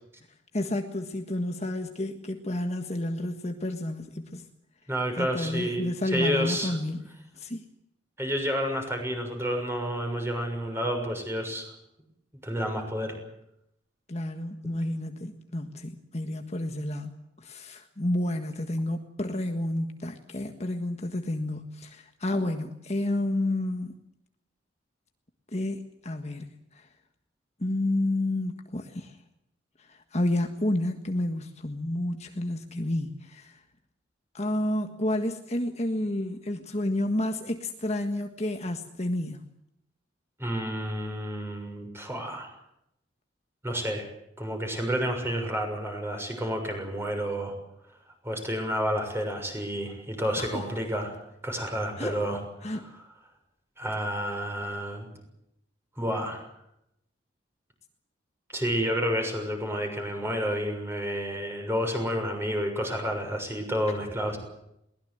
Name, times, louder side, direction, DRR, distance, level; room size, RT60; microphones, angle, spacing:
voice 1, 0.5-4.5 5.2-7.6 14.1-17.1 17.4-24.0 25.5-26.9 27.6-29.2 29.8-33.6 34.3-39.4 50.4-50.7 52.0-52.2 52.6-52.9, left 1 dB, 35° left, 6 dB, 1.6 m, -30 dB
voice 2, 4.9-6.7 8.2-11.7 12.4-13.2 40.4-42.5 43.6-44.1 44.4-47.5 48.2-52.8 53.8-55.1 56.0-56.4 58.5-64.4, equal, 15° right, 3 dB, 6.6 m, -30 dB
22.5 x 20.0 x 8.0 m, 0.80 s
head